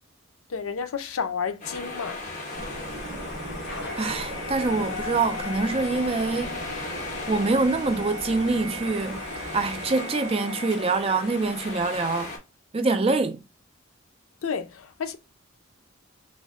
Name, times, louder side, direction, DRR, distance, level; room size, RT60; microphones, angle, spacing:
voice 1, 0.5-2.2 14.4-15.2, left 6 dB, 80° left, 0.5 m, -31 dB
sound 1, 1.6-12.4, left 2 dB, 35° left, 1.5 m, -38 dB
sound 2, 2.4-12.2, left 3 dB, 55° left, 1.0 m, -39 dB
sound 3, 2.5-9.9, right 1 dB, 45° right, 1.1 m, -40 dB
voice 2, 3.9-6.6 7.3-12.3 12.7-13.4, right 3 dB, 25° right, 0.4 m, -25 dB
4.1 x 2.1 x 3.6 m
head